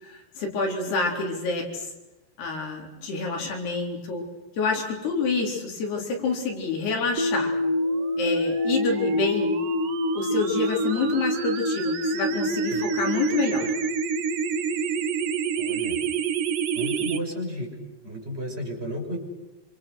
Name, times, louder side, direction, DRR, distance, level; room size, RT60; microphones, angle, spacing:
voice 1, 0.0-1.9 2.4-4.3 4.6-7.5 8.2-9.6 10.1-13.7, left 4 dB, 80° left, 0 dB, 6.2 m, -28 dB
sound 1, 7.2-17.2, right 2 dB, 70° right, 1.4 m, -26 dB
voice 2, 15.6-16.0 16.7-17.7 18.0-19.2, equal, 15° right, 1 dB, 6.1 m, -33 dB
27.5 x 27.5 x 6.5 m, 1.0 s
omnidirectional pair, 4.6 m